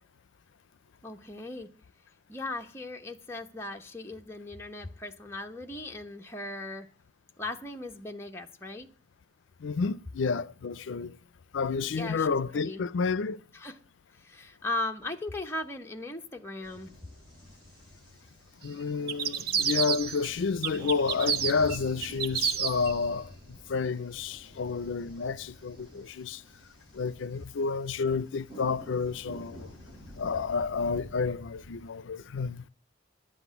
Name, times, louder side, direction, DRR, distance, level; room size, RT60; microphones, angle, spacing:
voice 1, 1.0-1.7 2.3-6.9 7.4-8.9 11.9-12.8 13.5-13.8 14.1-16.9, left 2 dB, 15° left, 1.0 m, -38 dB
voice 2, 9.6-11.1 11.5-13.4 18.6-23.3 23.7-26.4 26.9-29.7 30.2-32.6, left 5 dB, 80° left, 0.5 m, -30 dB
sound 1, 16.6-31.9, equal, 20° right, 5.9 m, -49 dB
sound 2, 19.1-20.3 20.6-22.9, right 7 dB, 50° right, 0.7 m, -30 dB
11.5 x 8.0 x 6.9 m
head